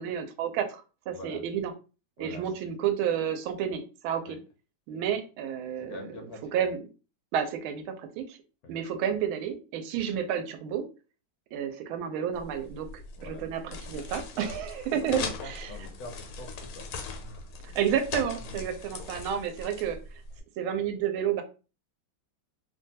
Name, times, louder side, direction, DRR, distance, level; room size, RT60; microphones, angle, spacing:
voice 1, 0.0-1.7 2.2-4.4 4.9-6.1 6.5-6.8 7.3-8.4 8.7-10.9 11.5-15.7 17.7-20.0 20.6-21.4, right 8 dB, 85° right, 7 dB, 1.4 m, -31 dB
voice 2, 1.1-1.4 2.2-2.4 4.2-4.4 5.8-6.5 8.6-8.8 13.2-13.5 15.4-16.9 17.1-17.5 18.5-18.7, left 2 dB, 70° left, 2 dB, 0.9 m, -44 dB
sound 1, 12.4-20.4, left 4 dB, 90° left, 1.5 m, -40 dB
3.3 x 2.2 x 2.7 m, 0.33 s
omnidirectional pair, 2.3 m